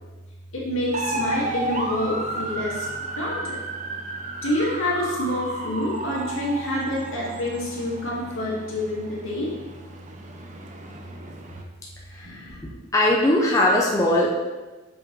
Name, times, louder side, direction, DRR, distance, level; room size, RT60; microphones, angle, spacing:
voice 1, 0.5-2.9 3.1-3.6 4.4-9.5 12.2-12.6, left 1 dB, 90° left, -4 dB, 1.9 m, -27 dB
sound 1, 0.9-11.6, right 2 dB, 35° right, 0.5 m, -33 dB
voice 2, 12.1-12.6 12.9-14.3, left 1 dB, 15° left, -3 dB, 0.6 m, -20 dB
6.3 x 5.2 x 3.1 m, 1.2 s
head